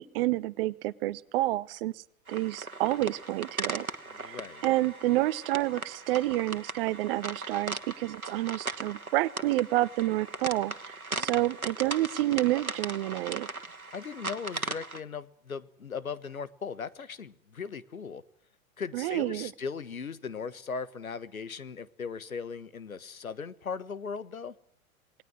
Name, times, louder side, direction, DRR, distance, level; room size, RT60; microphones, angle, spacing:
voice 1, 0.0-3.9 4.2-13.5 18.9-19.5, right 17 dB, 40° right, 1.1 m, -29 dB
sound 1, 2.3-15.0, right 3 dB, 90° right, 1.6 m, -38 dB
voice 2, 4.1-4.6 11.1-11.5 13.9-18.2 18.8-24.5, left 5 dB, 80° left, 1.5 m, -38 dB
28.0 x 19.5 x 6.3 m
figure-of-eight pair, 100°, 42 cm